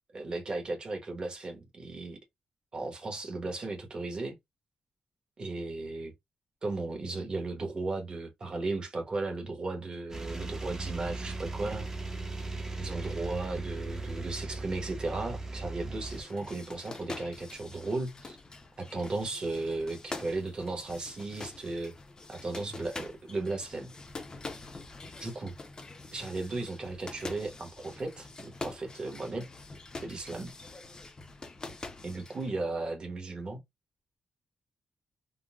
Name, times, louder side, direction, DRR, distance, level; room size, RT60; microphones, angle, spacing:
voice 1, 0.1-2.2 2.7-4.4 5.4-6.1 6.6-11.9 12.8-18.4 18.8-21.9 22.3-23.9 25.2-25.5 26.1-29.5 30.0-30.5 32.0-33.6, right 3 dB, 35° right, 1.0 m, -35 dB
sound 1, 10.1-16.2, right 3 dB, 20° right, 0.6 m, -38 dB
sound 2, 16.0-32.5, left 3 dB, 30° left, 0.6 m, -45 dB
3.7 x 2.1 x 2.2 m
wide cardioid pair, 125°, 3 cm